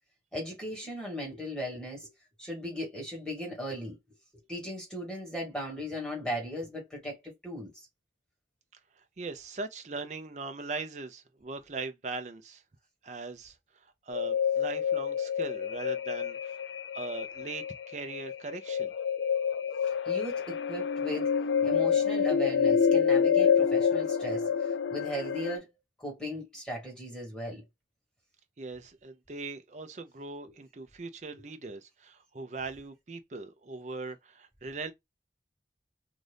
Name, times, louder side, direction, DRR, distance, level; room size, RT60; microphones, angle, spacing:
voice 1, 0.3-2.1 2.4-4.0 4.3-7.7 20.0-21.3 21.6-25.7 26.0-27.6, equal, 5° left, 1.5 m, -37 dB
voice 2, 9.2-12.6 13.0-13.6 14.1-16.6 16.9-18.9 28.6-34.9, right 3 dB, 40° right, 0.5 m, -40 dB
sound 1, 14.1-25.6, left 7 dB, 85° left, 0.4 m, -28 dB
2.6 x 2.5 x 3.3 m
head